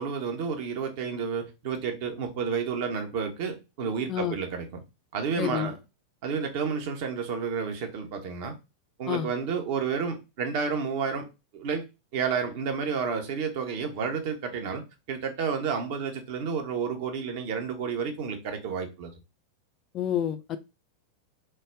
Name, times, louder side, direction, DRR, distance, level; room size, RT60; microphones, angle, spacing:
voice 1, 0.0-4.7 5.1-5.8 6.2-8.5 9.0-11.3 11.5-14.8 15.1-19.1, right 6 dB, 50° right, 0.8 m, -30 dB
voice 2, 5.4-5.7 9.1-9.3 19.9-20.6, left 10 dB, 30° left, 0.4 m, -28 dB
3.2 x 2.1 x 3.4 m
figure-of-eight pair, 90°, 0 cm